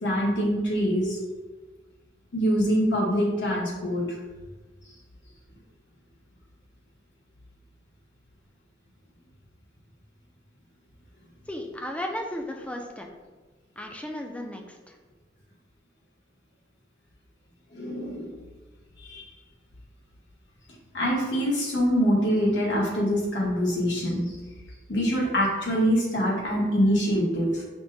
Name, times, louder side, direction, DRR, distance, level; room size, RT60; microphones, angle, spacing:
voice 1, 0.0-1.2 2.3-4.0 17.7-18.3 19.0-19.2 20.9-24.3 24.9-27.6, equal, 80° left, -3 dB, 1.0 m, -24 dB
voice 2, 11.5-13.1 13.8-14.8, left 1 dB, 5° left, 2 dB, 0.3 m, -34 dB
5.8 x 2.1 x 2.6 m, 1.3 s
head